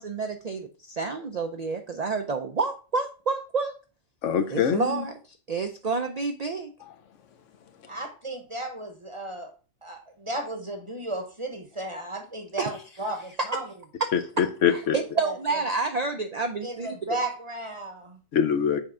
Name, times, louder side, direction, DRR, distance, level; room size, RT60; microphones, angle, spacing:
voice 1, 0.0-3.8 4.5-5.1 5.5-6.7 12.6-12.7 14.7-17.0, right 4 dB, 55° right, 0.4 m, -29 dB
voice 2, 4.2-5.1 14.1-15.0 18.3-18.8, left 8 dB, 70° left, 1.0 m, -24 dB
voice 3, 7.9-9.5 9.8-13.7 14.9-15.4 16.6-18.2, right 2 dB, 25° right, 0.9 m, -34 dB
6.4 x 4.4 x 3.7 m
omnidirectional pair, 1.4 m